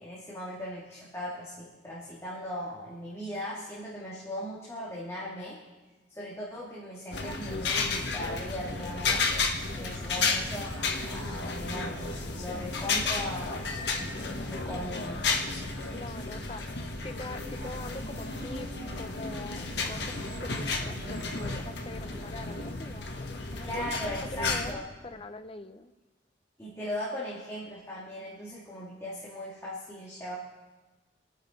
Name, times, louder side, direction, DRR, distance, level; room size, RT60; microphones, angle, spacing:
voice 1, 0.0-5.6 6.1-9.3 9.8-13.7 14.1-15.2 16.3-16.4 23.6-24.8 26.6-30.4, equal, 15° left, -7 dB, 2.7 m, -38 dB
sound 1, 7.1-24.7, left 4 dB, 70° left, 1.5 m, -33 dB
sound 2, 9.4-22.7, right 2 dB, 65° right, 1.5 m, -50 dB
voice 2, 15.9-16.6 17.0-18.7 19.0-24.8 25.0-25.9, left 2 dB, 30° left, 9 dB, 0.7 m, -43 dB
27.5 x 9.2 x 4.5 m, 1.2 s
head